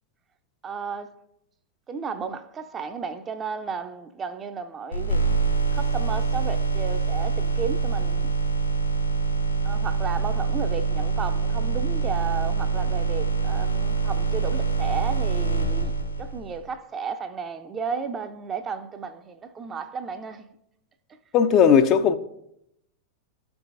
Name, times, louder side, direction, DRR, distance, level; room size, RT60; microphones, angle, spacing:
voice 1, 0.6-1.1 1.9-5.2 5.7-8.3 9.6-15.9 16.2-20.5 21.1-21.2, right 5 dB, 25° right, 0.6 m, -33 dB
sound 1, 4.9-16.6, right 4 dB, 75° left, 2.4 m, -25 dB
voice 2, 21.3-22.2, left 7 dB, 35° left, 0.5 m, -17 dB
13.0 x 4.7 x 2.6 m
figure-of-eight pair, 90°, 0 cm